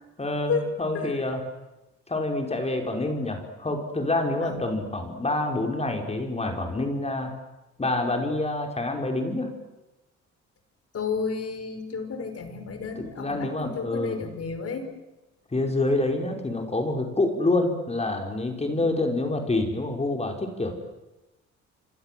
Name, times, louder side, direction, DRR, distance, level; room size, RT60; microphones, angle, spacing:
voice 1, 0.2-1.4 2.1-7.3 7.8-9.5 13.0-14.2 15.5-20.7, left 2 dB, 20° left, 3 dB, 5.6 m, -27 dB
voice 2, 10.9-14.9 18.7-18.9, left 5 dB, 55° left, 8 dB, 5.3 m, -32 dB
28.0 x 25.5 x 7.9 m, 1.0 s
cardioid pair, 85°, 29 cm